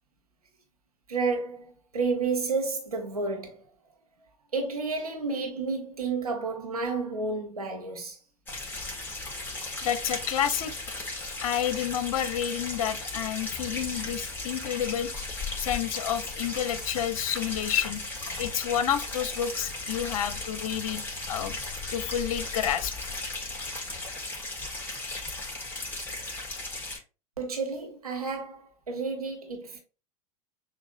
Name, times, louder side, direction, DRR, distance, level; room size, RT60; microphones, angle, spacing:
voice 1, 1.1-3.6 4.5-8.2 27.4-29.8, right 4 dB, 90° right, 1.1 m, -31 dB
rocky-stream-in-mountains-surround-sound-rear, 8.5-27.0, left 2 dB, 10° left, 1.7 m, -36 dB
voice 2, 9.8-10.7 11.4-15.2 15.6-18.0 18.4-21.5 21.9-23.1, left 10 dB, 65° left, 0.7 m, -29 dB
6.7 x 2.6 x 2.6 m
hypercardioid pair, 90°, 19 cm